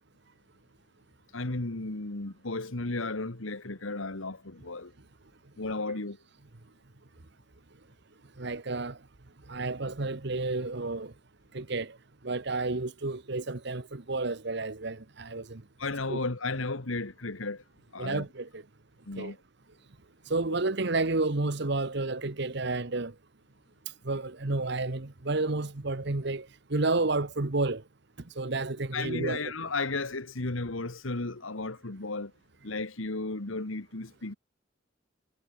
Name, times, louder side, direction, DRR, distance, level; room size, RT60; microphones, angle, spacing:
voice 1, 1.3-4.9 5.6-6.2 15.8-17.6 17.9-18.3 19.1-19.4 28.9-32.3 32.6-34.4, left 3 dB, 85° left, 1.8 m, -34 dB
voice 2, 8.4-9.0 9.5-11.1 11.5-12.0 12.2-15.6 16.1-16.2 18.0-18.6 19.2-19.3 20.3-23.1 24.0-27.8 28.4-29.4, right 3 dB, 60° right, 1.2 m, -31 dB
head